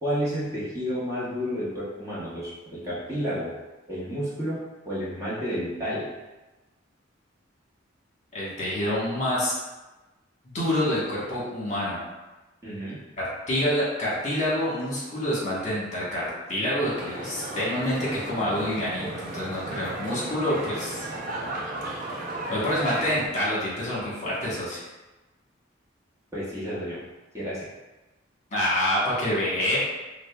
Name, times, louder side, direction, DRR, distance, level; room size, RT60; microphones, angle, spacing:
voice 1, 0.0-3.5 3.9-4.6 4.8-6.1 12.6-13.0 26.3-27.0 27.3-27.6, equal, 15° right, -9 dB, 0.9 m, -30 dB
voice 2, 8.3-9.5 10.5-12.0 13.2-21.1 22.5-24.8 28.5-29.8, left 1 dB, 35° left, -7 dB, 1.2 m, -27 dB
sound 1, 16.8-23.3, right 2 dB, 45° right, 0.6 m, -35 dB
6.1 x 2.1 x 2.3 m, 1.1 s
head